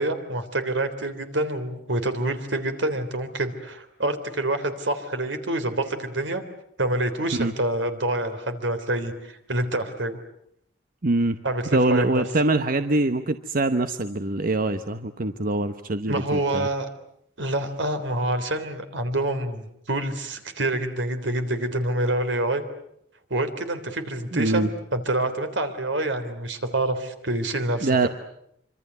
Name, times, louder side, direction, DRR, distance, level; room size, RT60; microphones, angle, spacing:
voice 1, 0.0-6.4 6.8-10.2 11.4-12.2 16.1-16.9 17.4-22.6 23.3-28.1, right 1 dB, 80° right, 9 dB, 3.4 m, -27 dB
voice 2, 11.0-11.4 11.7-16.7 24.3-24.7 27.8-28.1, right 2 dB, 50° right, 9 dB, 1.1 m, -23 dB
26.5 x 25.5 x 8.2 m, 0.73 s
head